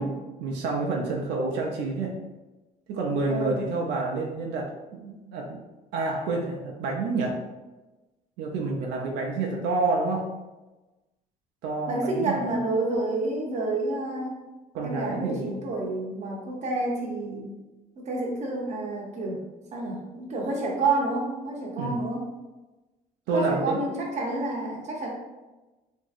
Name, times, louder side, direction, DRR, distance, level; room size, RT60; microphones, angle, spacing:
voice 1, 0.0-2.2 2.9-5.6 5.9-7.4 8.4-10.3 11.6-12.4 14.7-15.6 21.8-22.0 23.3-23.8, right 3 dB, 85° right, -1 dB, 0.5 m, -28 dB
voice 2, 3.3-3.6 11.9-14.4 14.8-17.5 18.0-19.4 19.7-22.2 23.3-25.1, right 2 dB, 45° right, -1 dB, 0.7 m, -29 dB
2.9 x 2.6 x 2.4 m, 1.1 s
cardioid pair, 110°, 17 cm